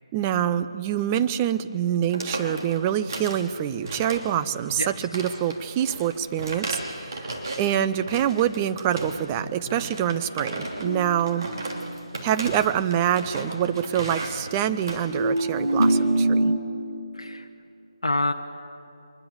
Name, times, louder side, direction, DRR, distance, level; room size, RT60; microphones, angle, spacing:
voice 1, 0.1-7.3 7.6-11.5 12.2-16.5, right 10 dB, 15° right, 11 dB, 0.5 m, -26 dB
sound 1, 1.1-1.4 1.6-1.8 2.0-3.5 3.8-4.4 4.7-7.7 8.0-9.3 9.7-15.9, right 2 dB, 45° right, 3.0 m, -35 dB
voice 2, 4.8-5.1 9.4-9.8 17.1-17.5 18.0-18.3, left 2 dB, 65° left, 4 dB, 0.9 m, -28 dB
sound 2, 10.8-12.2 15.1-16.6, right 1 dB, 85° right, 2.6 m, -24 dB
24.0 x 20.5 x 7.0 m, 2.8 s
figure-of-eight pair, 155°, 3 cm